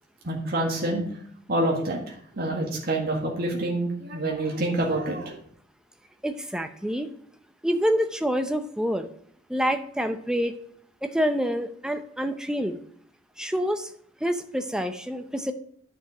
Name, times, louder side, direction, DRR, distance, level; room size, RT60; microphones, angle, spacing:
voice 1, 0.2-1.1 1.5-5.4, right 1 dB, 55° right, -2 dB, 1.7 m, -27 dB
voice 2, 6.2-7.1 7.6-9.1 9.5-10.5 11.0-12.8 13.4-13.9 14.2-15.5, equal, 5° right, 7 dB, 0.6 m, -27 dB
9.2 x 5.3 x 4.9 m, 0.63 s
head